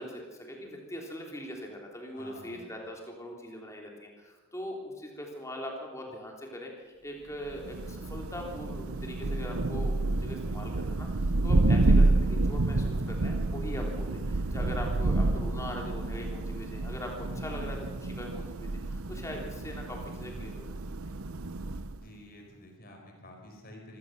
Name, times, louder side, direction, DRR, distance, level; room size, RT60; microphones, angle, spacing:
voice 1, 0.0-20.7, equal, 15° left, 0 dB, 3.5 m, -41 dB
voice 2, 2.1-2.6 17.3-17.7 22.0-24.0, left 1 dB, 45° left, 2 dB, 4.8 m, -49 dB
Thunder, 7.5-22.1, right 2 dB, 85° right, 0.9 m, -29 dB
25.0 x 16.5 x 6.7 m, 1.4 s
head